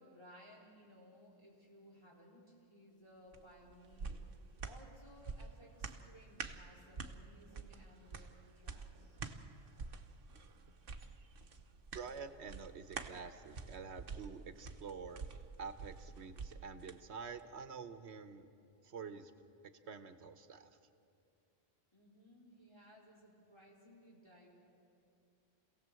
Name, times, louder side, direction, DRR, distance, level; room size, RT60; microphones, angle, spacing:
voice 1, 0.0-4.2 4.6-9.2 21.9-24.5, equal, 25° left, -4 dB, 4.4 m, -60 dB
sound 1, 3.3-17.0 17.4-17.5, right 5 dB, 60° right, 1.2 m, -48 dB
voice 2, 11.9-15.3 15.6-18.5 18.8-19.3 19.9-20.8, right 5 dB, 85° right, 10 dB, 1.3 m, -48 dB
26.5 x 17.0 x 7.7 m, 2.6 s
omnidirectional pair, 1.1 m